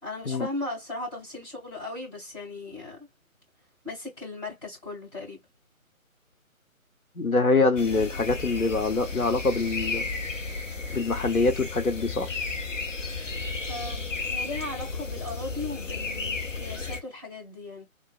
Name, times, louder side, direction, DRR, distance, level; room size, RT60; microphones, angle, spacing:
voice 1, 0.0-3.1 3.8-5.4 13.7-17.8, left 2 dB, 20° left, 2.5 m, -37 dB
voice 2, 7.2-10.1 10.9-12.3, left 3 dB, 85° left, 1.1 m, -24 dB
sound 1, 7.8-17.0, left 3 dB, 60° left, 1.2 m, -33 dB
3.8 x 3.0 x 2.4 m
figure-of-eight pair, 150°, 42 cm